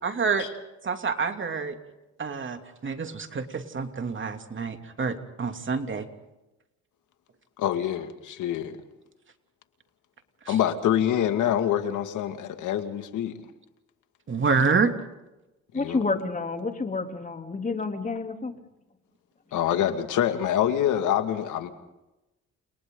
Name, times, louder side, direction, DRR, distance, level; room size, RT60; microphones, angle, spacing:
voice 1, 0.0-0.5 0.8-1.8 2.2-6.1 10.5-10.6 14.3-14.9, right 5 dB, 40° right, 6 dB, 2.9 m, -27 dB
voice 2, 7.6-8.8 10.5-13.4 15.7-16.0 19.5-21.7, left 10 dB, 80° left, 7 dB, 2.3 m, -26 dB
voice 3, 15.7-18.5, left 3 dB, 25° left, 4 dB, 3.4 m, -29 dB
30.0 x 28.5 x 4.0 m, 0.98 s
cardioid pair, 90°, 30 cm